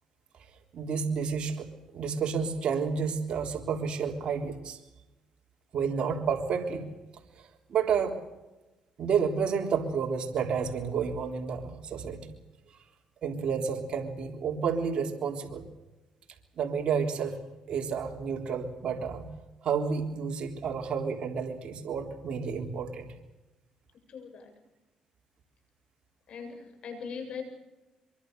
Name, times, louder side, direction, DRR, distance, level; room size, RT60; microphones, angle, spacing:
voice 1, 0.7-1.7 1.9-4.8 5.7-6.8 7.7-8.2 9.0-12.3 13.2-15.7 16.6-17.4 17.7-19.3 19.6-23.1, right 6 dB, 55° right, 2 dB, 3.7 m, -30 dB
voice 2, 24.1-24.5 26.3-27.4, left 6 dB, 55° left, 5 dB, 7.6 m, -40 dB
24.0 x 23.5 x 6.8 m, 1.0 s
cardioid pair, 100°, 2 cm